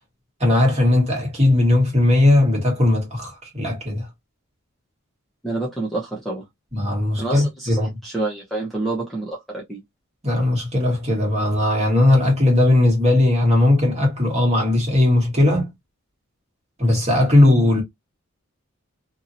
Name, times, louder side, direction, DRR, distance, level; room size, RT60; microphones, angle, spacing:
voice 1, 0.4-4.0 6.7-7.9 10.2-15.7 16.8-17.8, left 1 dB, 30° right, 1.6 m, -18 dB
voice 2, 5.4-6.4 7.2-9.8, right 2 dB, ahead, 0.9 m, -28 dB
2.8 x 2.8 x 2.6 m
head